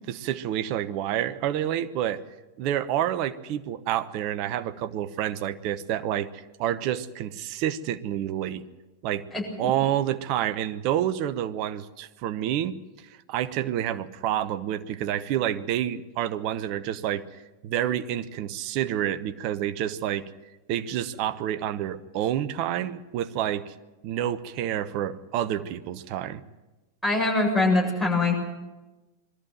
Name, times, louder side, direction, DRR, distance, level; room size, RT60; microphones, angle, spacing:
voice 1, 0.1-2.2 2.6-6.3 6.6-8.6 9.0-9.2 9.6-12.8 13.3-17.2 17.6-20.3 20.7-23.7 24.0-26.4, right 11 dB, 45° right, 12 dB, 0.9 m, -28 dB
voice 2, 9.3-9.7 27.0-28.3, left 2 dB, ahead, -1 dB, 7.8 m, -23 dB
21.5 x 14.0 x 9.2 m, 1.1 s
figure-of-eight pair, 90°, 0 cm